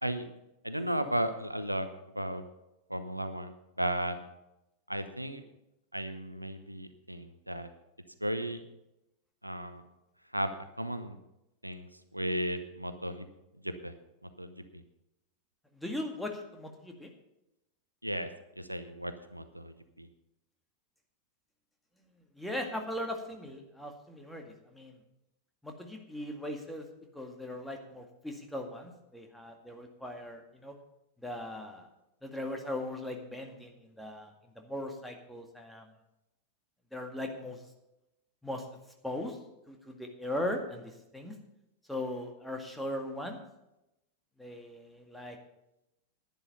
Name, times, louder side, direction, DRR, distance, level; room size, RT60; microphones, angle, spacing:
voice 1, 0.6-1.9 2.1-2.4 2.9-4.2 4.9-5.4 5.9-7.7 8.2-8.6 9.4-9.8 10.3-10.5 10.8-11.2 11.6-11.9 12.1-13.3 13.6-13.9 14.4-14.8 18.0-18.3 18.6-20.1, right 1 dB, 90° right, 10 dB, 0.8 m, -35 dB
voice 2, 15.7-17.1 22.4-25.0 25.6-26.9 27.1-30.8 31.2-31.9 32.2-35.9 36.9-37.7 38.4-38.7 39.0-39.4 39.7-41.4 41.9-43.4 44.4-45.4, left 1 dB, ahead, 2 dB, 2.0 m, -39 dB
11.0 x 10.5 x 5.5 m, 0.90 s
figure-of-eight pair, 90°, 0 cm